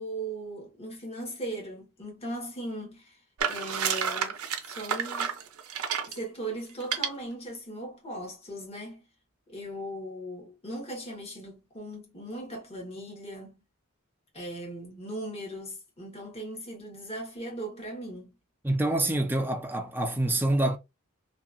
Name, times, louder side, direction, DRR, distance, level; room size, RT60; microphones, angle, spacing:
voice 1, 0.0-3.2 3.5-4.4 4.7-5.3 6.0-9.0 9.5-13.6 14.3-18.3, right 1 dB, 30° left, 1.2 m, -38 dB
sound 1, 3.4-6.2 6.8-7.1, right 7 dB, 80° right, 0.6 m, -30 dB
voice 2, 18.6-20.8, right 1 dB, 10° right, 0.4 m, -26 dB
2.9 x 2.3 x 2.5 m
head